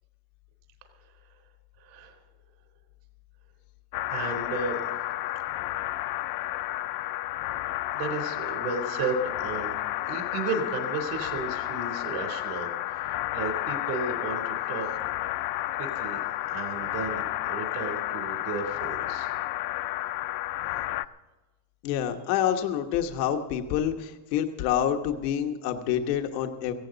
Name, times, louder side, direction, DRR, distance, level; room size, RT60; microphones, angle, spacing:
voice 1, 1.8-2.2 4.1-4.8 7.9-14.9 15.8-16.2 16.5-19.3, right 4 dB, 65° right, 4 dB, 3.6 m, -34 dB
sound 1, 3.9-21.1, left 16 dB, 50° left, 0.5 m, -31 dB
voice 2, 21.8-26.7, left 10 dB, 90° left, 5 dB, 1.3 m, -27 dB
17.5 x 15.5 x 4.0 m, 1.1 s
cardioid pair, 145°, 47 cm